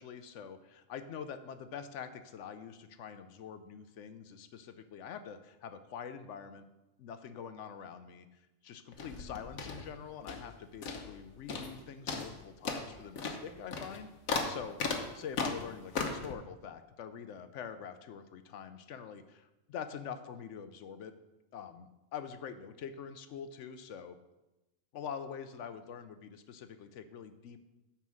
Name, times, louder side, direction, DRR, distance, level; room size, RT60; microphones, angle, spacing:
voice 1, 0.0-6.6 7.0-14.1 14.4-14.8 15.1-21.1 21.5-24.2 24.9-27.6, left 7 dB, 70° left, 10 dB, 0.9 m, -45 dB
sound 1, 8.9-10.5 10.8-11.2 11.5-11.8 12.1-16.3, left 4 dB, 90° left, 1.4 m, -37 dB
9.3 x 4.4 x 6.1 m, 1.0 s
omnidirectional pair, 1.4 m